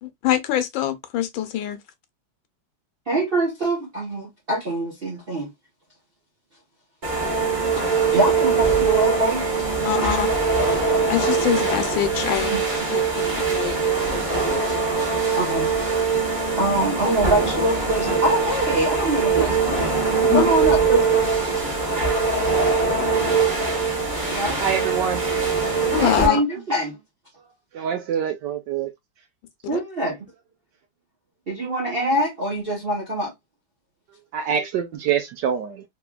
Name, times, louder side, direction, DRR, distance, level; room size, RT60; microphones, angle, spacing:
voice 1, 0.0-1.8 9.9-10.3 11.1-12.5 12.9-13.0 13.5-13.8 20.2-20.4 25.9-26.4 29.7-29.8, left 11 dB, 75° left, 1.4 m, -24 dB
voice 2, 3.1-5.5 8.1-9.5 12.5-12.6 15.3-15.7 16.6-21.3 24.3-24.6 26.0-27.0 29.7-30.2 31.5-33.3, right 1 dB, 50° right, 0.6 m, -24 dB
sound 1, 7.0-26.3, right 4 dB, 25° right, 1.2 m, -22 dB
voice 3, 24.6-25.2 27.8-28.9 34.3-35.8, right 8 dB, 75° right, 1.1 m, -25 dB
3.4 x 3.4 x 2.2 m
omnidirectional pair, 2.2 m